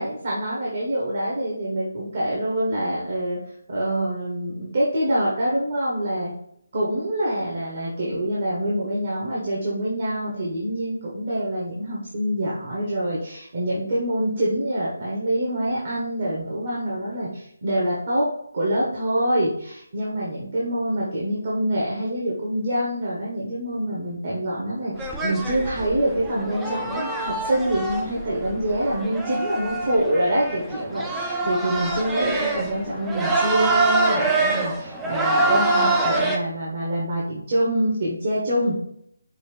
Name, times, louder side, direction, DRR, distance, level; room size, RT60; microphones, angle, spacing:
voice 1, 0.0-3.4 3.7-6.3 6.7-18.3 18.5-38.7, right 1 dB, 45° right, -6 dB, 1.2 m, -25 dB
sound 1, 25.0-36.4, right 2 dB, 5° right, 0.4 m, -25 dB
5.5 x 2.5 x 3.3 m, 0.72 s
figure-of-eight pair, 165°, 0 cm